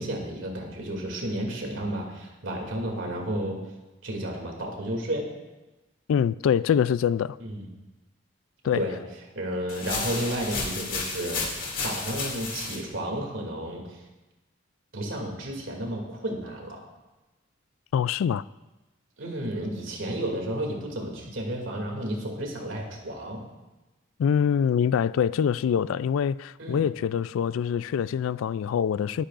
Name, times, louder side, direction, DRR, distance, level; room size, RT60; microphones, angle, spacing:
voice 1, 0.0-3.6 4.0-5.3 7.4-7.7 8.7-9.0 9.3-11.4 11.8-14.0 14.9-16.8 19.2-23.4 26.6-26.9, right 1 dB, 75° right, 2.6 m, -32 dB
voice 2, 6.1-7.4 8.6-8.9 17.9-18.4 24.2-29.2, left 8 dB, 90° left, 0.3 m, -24 dB
sound 1, 9.7-12.8, left 4 dB, 45° left, 2.6 m, -32 dB
19.5 x 10.0 x 2.5 m
head